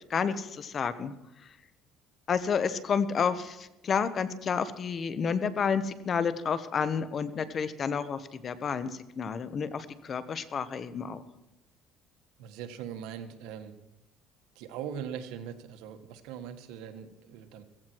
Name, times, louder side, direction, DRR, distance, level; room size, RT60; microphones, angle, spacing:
voice 1, 0.1-1.1 2.3-8.9 9.2-11.2, left 6 dB, 35° left, 13 dB, 1.2 m, -30 dB
voice 2, 12.4-13.7 14.5-17.6, right 8 dB, 90° right, 8 dB, 1.6 m, -41 dB
16.0 x 15.5 x 4.7 m, 0.95 s
cardioid pair, 130°, 0 cm